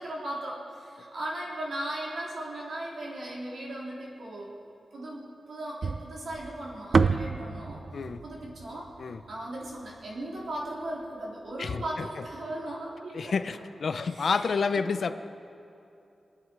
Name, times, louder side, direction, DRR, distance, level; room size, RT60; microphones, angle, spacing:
voice 1, 0.0-4.5 4.9-7.8 8.2-8.9 9.3-13.4 14.0-14.8, right 1 dB, 75° right, -4 dB, 3.8 m, -37 dB
sound 1, 5.8-10.1, right 4 dB, 55° right, 0.5 m, -29 dB
voice 2, 13.1-15.1, left 5 dB, 60° left, 10 dB, 0.6 m, -29 dB
24.5 x 9.6 x 4.8 m, 2.8 s
wide cardioid pair, 130°, 0 cm